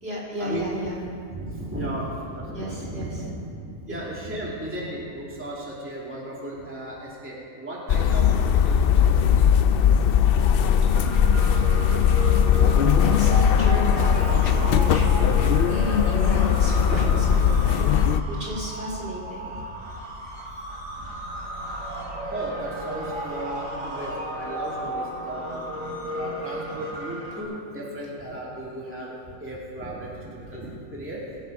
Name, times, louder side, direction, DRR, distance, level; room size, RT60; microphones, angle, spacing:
voice 1, 0.0-1.0 2.5-3.1 13.0-19.4, equal, 50° right, -5 dB, 3.5 m, -33 dB
voice 2, 1.0-9.5 13.1-13.2 14.0-14.1 21.0-21.1 22.3-25.6 26.1-29.1 29.4-31.4, right 1 dB, 10° right, -6 dB, 2.2 m, -35 dB
sound 1, 7.9-18.2, left 8 dB, 65° left, 0.6 m, -19 dB
sound 2, 10.9-27.4, right 1 dB, 75° right, 3.4 m, -34 dB
21.5 x 8.0 x 5.2 m, 2.4 s
omnidirectional pair, 1.4 m